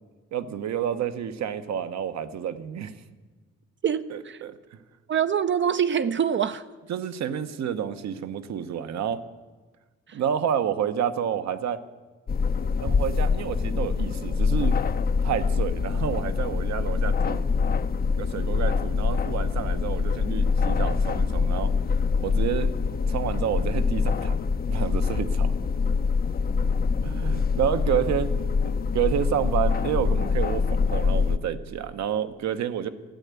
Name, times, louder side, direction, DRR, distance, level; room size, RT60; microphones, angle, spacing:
voice 1, 0.3-2.9 4.1-4.8 6.9-9.2 10.1-11.8 12.8-14.8 15.2-17.4 18.2-21.7 22.2-25.5 27.0-32.9, right 9 dB, 65° right, 11 dB, 0.9 m, -29 dB
voice 2, 3.8-4.4 5.1-6.6 10.1-10.2, right 8 dB, 40° right, 11 dB, 0.5 m, -25 dB
sound 1, 12.3-31.4, left 5 dB, 30° left, 0.5 m, -25 dB
13.0 x 9.3 x 8.2 m, 1.3 s
cardioid pair, 90°, 30 cm